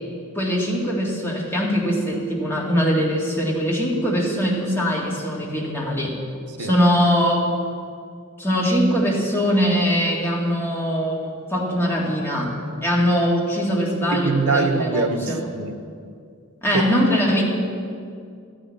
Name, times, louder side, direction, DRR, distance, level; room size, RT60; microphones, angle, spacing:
voice 1, 0.3-6.2 6.6-7.5 8.4-12.5 12.8-15.4 16.6-17.4, equal, 10° left, -3 dB, 2.0 m, -22 dB
voice 2, 14.1-15.7 16.7-16.9, right 4 dB, 85° right, 8 dB, 0.9 m, -23 dB
12.5 x 6.4 x 9.6 m, 2.3 s
head